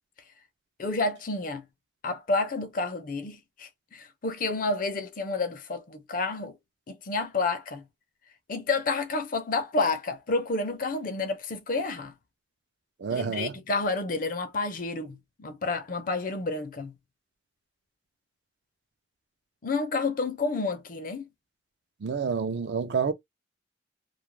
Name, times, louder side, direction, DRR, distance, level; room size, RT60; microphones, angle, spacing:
voice 1, 0.8-1.7 2.0-6.6 6.9-7.8 8.5-12.1 13.1-17.0 19.6-21.3, left 3 dB, 50° left, 0.5 m, -30 dB
voice 2, 13.0-13.6 22.0-23.1, right 5 dB, 65° right, 0.4 m, -28 dB
2.2 x 2.0 x 3.1 m
head